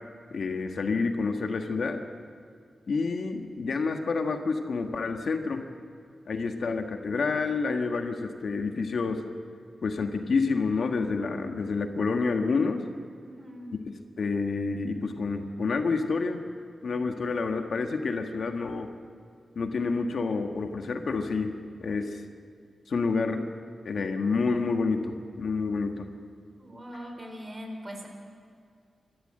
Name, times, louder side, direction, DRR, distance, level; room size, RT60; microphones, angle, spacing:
voice 1, 0.3-2.0 2.9-5.7 6.3-9.2 9.8-12.9 13.9-16.4 16.8-18.9 19.5-22.2 22.9-23.5 23.8-26.1, left 4 dB, 70° left, 5 dB, 1.5 m, -28 dB
voice 2, 13.2-13.8 26.6-28.1, equal, 25° right, 3 dB, 4.2 m, -41 dB
26.5 x 13.0 x 7.7 m, 2.1 s
cardioid pair, 65°, 0 cm